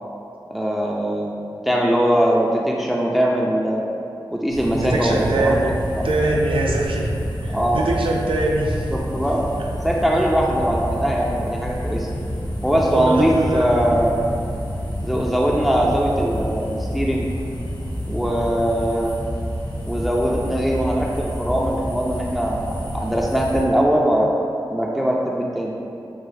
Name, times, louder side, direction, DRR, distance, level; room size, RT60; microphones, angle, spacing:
voice 1, 0.5-1.3 1.6-3.8 4.3-5.6 6.0-6.1 7.5-7.8 8.9-9.4 9.8-12.1 12.6-14.2 15.0-17.3 18.1-19.1 19.9-24.3 24.7-25.7, equal, ahead, -2 dB, 0.5 m, -21 dB
sound 1, 4.5-23.6, equal, 85° left, 1.3 m, -28 dB
voice 2, 4.7-7.1 7.4-8.9 9.6-9.7 10.1-10.2 12.9-13.7 18.2-18.5, right 2 dB, 90° right, -1 dB, 0.5 m, -23 dB
6.1 x 2.2 x 3.2 m, 2.6 s
cardioid pair, 45°, 9 cm